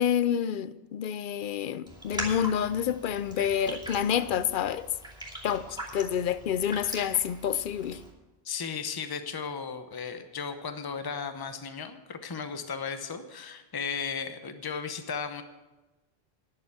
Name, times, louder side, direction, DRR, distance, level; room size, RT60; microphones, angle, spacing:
voice 1, 0.0-4.9 5.4-5.7 5.9-8.0, left 9 dB, 60° left, 0.6 m, -28 dB
Raindrop, 1.9-8.1, right 1 dB, 5° right, 2.5 m, -41 dB
voice 2, 8.4-15.4, left 6 dB, 25° left, 0.7 m, -35 dB
10.5 x 6.8 x 8.8 m
omnidirectional pair, 1.1 m